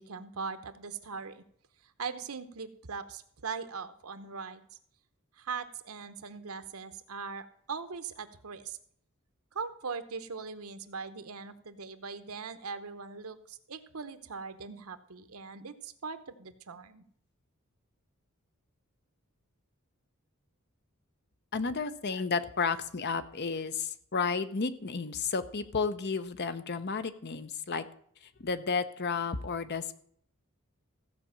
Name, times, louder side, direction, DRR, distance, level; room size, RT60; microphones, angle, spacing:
voice 1, 0.0-1.4 2.0-4.7 5.4-8.8 9.5-17.0, right 5 dB, 80° right, 11 dB, 1.0 m, -40 dB
voice 2, 21.5-27.8 28.4-29.9, left 5 dB, 50° left, 12 dB, 0.8 m, -32 dB
15.0 x 5.1 x 7.4 m, 0.63 s
head